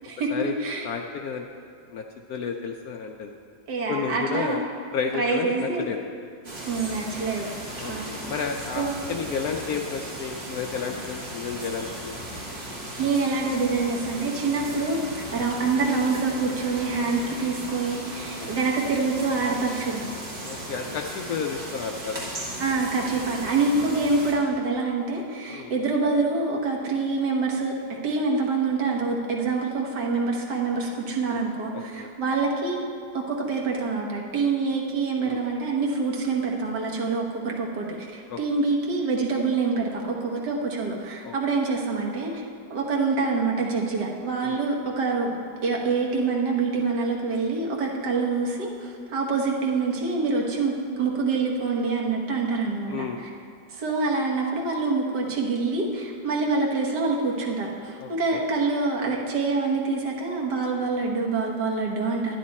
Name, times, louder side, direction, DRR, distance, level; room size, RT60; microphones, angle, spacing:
voice 1, 0.0-0.9 3.7-4.7 5.1-5.9 6.7-7.5 7.9-8.0 8.8-9.0 13.0-20.0 22.6-27.7 28.0-32.8 33.1-42.3 42.7-45.4 45.6-53.1 53.7-62.4, right 4 dB, 65° right, -1 dB, 1.8 m, -26 dB
voice 2, 0.8-1.5 1.9-3.3 3.9-4.7 4.9-6.0 7.8-12.2 15.3-15.5 18.2-18.5 20.4-22.3 25.5-25.7 31.3-31.5 31.7-32.1 35.2-35.4 38.3-38.4 41.2-41.3 44.4-44.6 52.9-53.2 58.0-58.4, left 6 dB, 70° left, 3 dB, 0.9 m, -32 dB
sound 1, 6.4-24.3, right 1 dB, 35° right, 2.0 m, -37 dB
11.5 x 10.0 x 4.2 m, 2.3 s
omnidirectional pair, 2.0 m